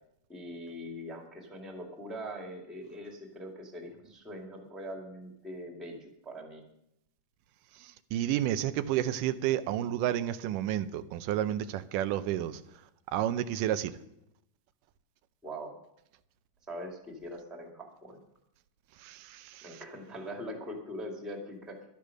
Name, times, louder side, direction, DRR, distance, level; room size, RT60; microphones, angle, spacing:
voice 1, 0.3-6.6 15.4-15.7 16.7-18.2 19.6-21.8, equal, ahead, 1 dB, 1.5 m, -42 dB
voice 2, 8.1-12.6 13.1-13.9 19.0-19.7, right 12 dB, 90° right, 11 dB, 2.3 m, -30 dB
12.0 x 10.0 x 6.5 m, 0.80 s
omnidirectional pair, 3.7 m